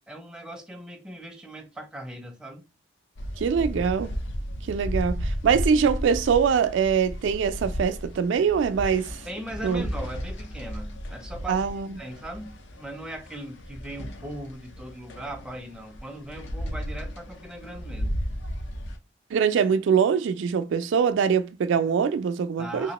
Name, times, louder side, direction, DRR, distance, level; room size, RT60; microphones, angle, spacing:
voice 1, 0.0-2.6 9.3-11.6 12.0-18.1 22.6-22.9, right 1 dB, 5° right, 0.4 m, -39 dB
sound 1, 3.2-19.0, equal, 80° left, 0.6 m, -34 dB
voice 2, 3.4-4.1 4.7-9.2 9.6-9.8 11.5-11.9 19.3-22.9, right 6 dB, 75° right, 0.3 m, -23 dB
3.0 x 2.9 x 2.9 m
head